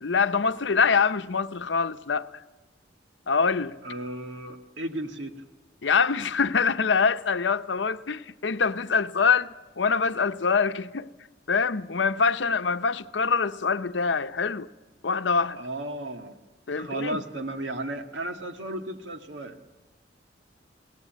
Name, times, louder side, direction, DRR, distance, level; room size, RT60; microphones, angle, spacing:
voice 1, 0.0-2.3 3.3-3.8 5.8-11.1 11.5-14.7 15.0-15.6 16.7-17.2, left 5 dB, 80° left, 0.8 m, -24 dB
voice 2, 3.8-5.4 15.6-16.4 16.8-19.6, right 1 dB, 85° right, 1.9 m, -34 dB
22.5 x 18.0 x 9.3 m
head